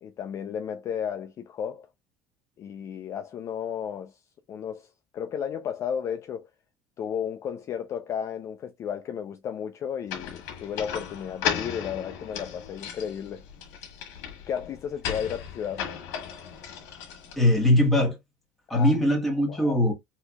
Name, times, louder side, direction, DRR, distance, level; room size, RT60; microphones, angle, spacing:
voice 1, 0.0-1.9 2.6-4.2 4.5-4.9 5.1-6.5 7.0-13.4 14.5-15.9 18.7-19.0 19.5-19.8, left 8 dB, 35° left, 0.5 m, -33 dB
sound 1, 10.1-17.7, left 8 dB, 80° left, 1.5 m, -36 dB
voice 2, 17.4-18.2 18.7-19.9, left 1 dB, ahead, 1.4 m, -21 dB
4.3 x 2.9 x 2.3 m
cardioid pair, 140°, 8 cm